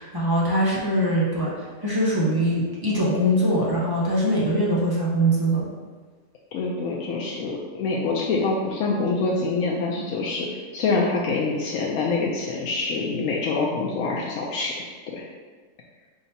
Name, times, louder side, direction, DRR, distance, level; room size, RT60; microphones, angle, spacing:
voice 1, 0.0-1.5 1.8-5.7, right 1 dB, 25° right, -6 dB, 0.5 m, -22 dB
voice 2, 6.5-10.5 10.7-15.2, left 3 dB, 80° left, -3 dB, 1.0 m, -25 dB
4.4 x 3.7 x 2.7 m, 1.4 s
omnidirectional pair, 1.3 m